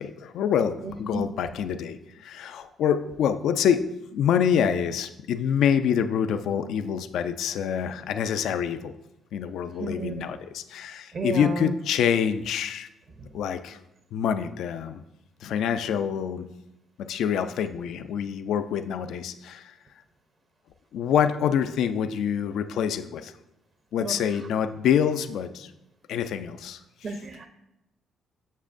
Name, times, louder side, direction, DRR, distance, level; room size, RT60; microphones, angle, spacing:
voice 1, 0.0-3.8 4.1-8.9 9.3-12.9 13.3-13.8 14.1-15.0 15.4-16.5 17.0-19.7 20.9-23.3 23.9-25.7 26.1-27.2, left 8 dB, 80° left, 11 dB, 0.3 m, -26 dB
voice 2, 0.8-1.2 9.8-10.2 11.1-11.7 24.0-24.1 27.0-27.5, right 3 dB, 50° right, 6 dB, 0.5 m, -32 dB
7.2 x 6.3 x 2.5 m, 0.89 s
cardioid pair, 90°, 0 cm